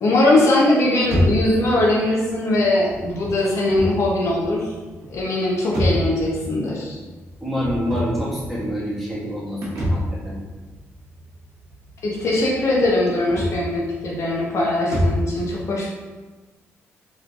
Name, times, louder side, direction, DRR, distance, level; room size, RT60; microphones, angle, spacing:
voice 1, 0.0-4.7 5.1-7.0 12.0-15.9, left 2 dB, 65° left, -3 dB, 0.7 m, -20 dB
sound 1, 1.0-15.4, equal, 90° right, 0.8 m, -28 dB
voice 2, 7.4-10.4, equal, ahead, -8 dB, 1.4 m, -27 dB
3.6 x 3.1 x 2.4 m, 1.3 s
cardioid pair, 80°, 5 cm